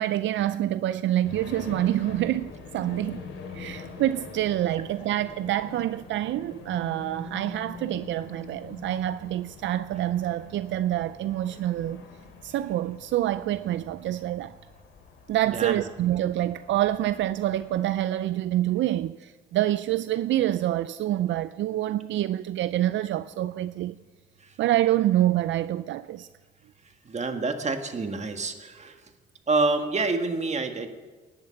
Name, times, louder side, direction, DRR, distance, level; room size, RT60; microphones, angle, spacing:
voice 1, 0.0-3.2 3.5-12.0 12.4-14.6 15.3-24.0 24.6-26.3, right 13 dB, 70° right, 0.4 m, -27 dB
sound 1, 1.2-18.1, left 5 dB, 80° left, 3.3 m, -44 dB
voice 2, 15.5-15.8 24.4-24.5 27.1-29.0 29.5-30.9, right 3 dB, 35° right, 1.8 m, -27 dB
18.0 x 10.5 x 5.9 m
cardioid pair, 90°, 20 cm